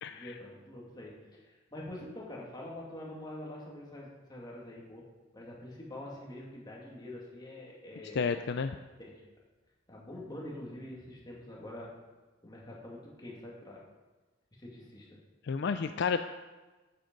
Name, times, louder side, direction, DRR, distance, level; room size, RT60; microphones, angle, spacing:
voice 1, 0.1-5.1 5.3-8.3 9.0-9.2 9.9-12.0 12.4-13.8 14.6-15.2, left 1 dB, 20° left, -3 dB, 2.2 m, -45 dB
voice 2, 8.2-8.8 15.4-16.2, left 5 dB, 60° left, 9 dB, 0.4 m, -31 dB
8.8 x 7.9 x 5.3 m, 1.2 s
head